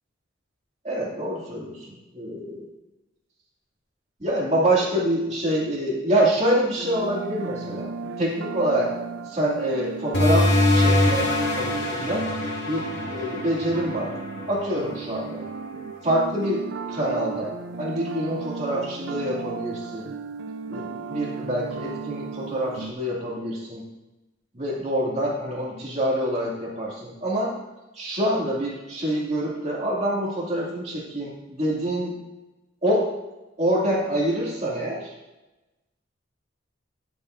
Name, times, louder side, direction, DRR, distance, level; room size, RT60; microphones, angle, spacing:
voice 1, 0.8-2.7 4.2-7.9 8.2-8.9 9.3-11.3 11.5-12.2 12.6-14.1 14.5-15.4 16.0-20.1 20.7-23.8 24.5-27.5 27.9-32.2 32.8-33.1 33.6-35.1, right 1 dB, 35° right, -5 dB, 2.6 m, -26 dB
sound 1, 6.8-22.9, right 4 dB, 75° right, 0.4 m, -35 dB
sound 2, 10.1-15.3, left 1 dB, 70° left, 2.1 m, -24 dB
11.5 x 7.1 x 2.7 m, 1.1 s
head